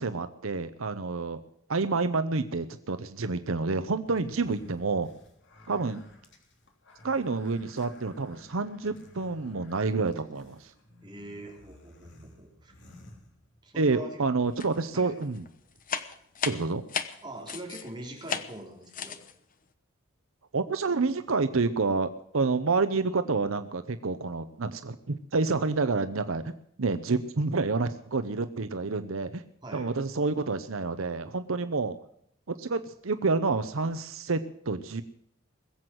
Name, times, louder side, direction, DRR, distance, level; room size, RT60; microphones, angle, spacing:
voice 1, 0.0-1.4 1.7-5.1 5.7-6.0 7.0-10.7 13.8-15.5 16.4-16.8 20.5-26.5 26.8-29.4 29.7-32.0 32.5-35.0, right 3 dB, 80° right, 10 dB, 0.8 m, -28 dB
sound 1, 4.2-13.8, left 1 dB, 60° left, 3.4 m, -54 dB
voice 2, 11.0-12.7 13.6-14.2 14.9-15.2 17.2-19.2 29.6-29.9, right 1 dB, 20° right, -1 dB, 3.8 m, -42 dB
sound 2, 14.6-15.0 15.2-17.9 18.2-18.6 18.9-19.3, left 6 dB, 40° left, 1.0 m, -34 dB
21.0 x 8.0 x 7.7 m, 0.70 s
head